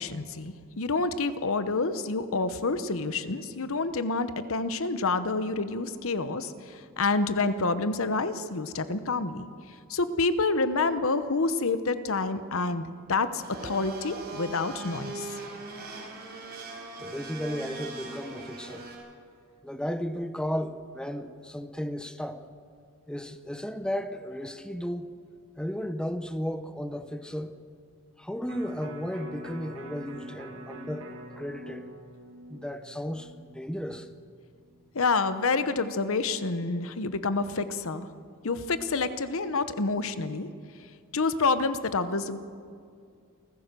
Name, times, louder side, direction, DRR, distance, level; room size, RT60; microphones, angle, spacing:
voice 1, 0.0-9.5 9.9-15.3 34.9-38.1 38.4-40.5 41.1-42.4, left 3 dB, 65° left, 1.0 m, -28 dB
Domestic sounds home sounds, 13.4-18.9, right 3 dB, 45° right, 5.0 m, -40 dB
voice 2, 17.0-18.8 19.6-22.4 23.1-25.1 25.6-27.5 28.2-31.1 31.4-31.9 32.5-34.1, equal, 5° left, 0.8 m, -34 dB
Electric guitar, 28.5-34.7 35.1-35.2, right 1 dB, 65° right, 2.1 m, -45 dB
28.5 x 14.5 x 6.8 m
head